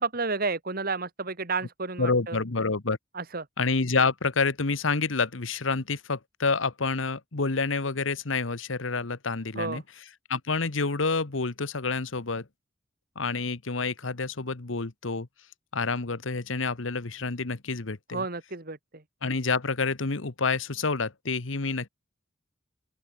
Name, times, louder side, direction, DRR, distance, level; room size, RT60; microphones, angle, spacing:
voice 1, 0.0-2.4 3.1-3.4 9.6-9.8 18.1-19.0, right 4 dB, 50° right, 2.3 m, -31 dB
voice 2, 2.0-3.0 3.6-9.8 10.3-12.5 13.1-15.3 15.7-18.3 19.2-21.9, left 4 dB, 90° left, 1.3 m, -28 dB
open air
head